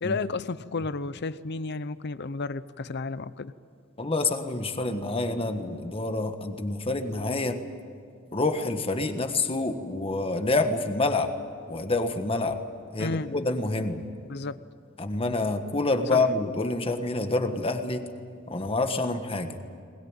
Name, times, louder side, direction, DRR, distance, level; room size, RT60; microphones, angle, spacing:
voice 1, 0.0-3.5 13.0-13.3 14.3-14.6 16.1-16.2, left 3 dB, 55° left, 15 dB, 0.7 m, -32 dB
voice 2, 4.0-7.6 8.3-11.3 11.7-12.6 12.9-14.0 15.0-18.1 18.5-19.6, left 2 dB, 30° left, 7 dB, 1.4 m, -27 dB
21.5 x 20.5 x 9.0 m, 2.4 s
head